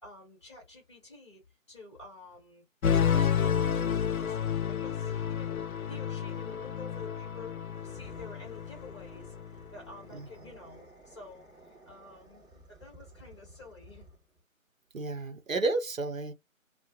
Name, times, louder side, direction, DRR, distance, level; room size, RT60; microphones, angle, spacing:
voice 1, 0.0-1.4 1.7-2.6 2.9-4.4 4.7-9.3 9.7-14.0, left 3 dB, 20° left, 1.1 m, -50 dB
sound 1, 2.8-9.6, left 8 dB, 85° left, 0.5 m, -30 dB
sound 2, 7.7-14.4, right 1 dB, 10° right, 1.0 m, -54 dB
voice 2, 10.1-10.6 14.9-16.3, right 3 dB, 70° right, 0.8 m, -32 dB
2.3 x 2.0 x 2.8 m
figure-of-eight pair, 155°, 41 cm